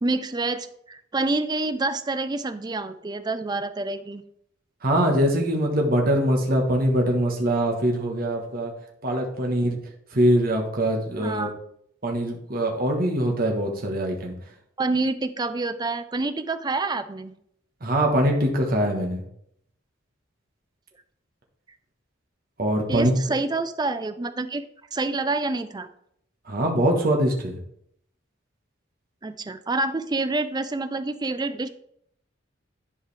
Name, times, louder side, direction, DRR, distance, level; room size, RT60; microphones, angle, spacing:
voice 1, 0.0-4.2 11.2-11.5 14.8-17.3 22.9-24.6 24.9-25.9 29.2-31.7, right 3 dB, 20° right, 11 dB, 0.4 m, -27 dB
voice 2, 4.8-8.7 9.0-9.8 10.1-11.5 12.0-14.3 17.8-19.2 22.6-23.2 26.5-27.6, right 1 dB, 45° right, 0 dB, 1.3 m, -23 dB
11.0 x 5.0 x 3.4 m, 0.72 s
head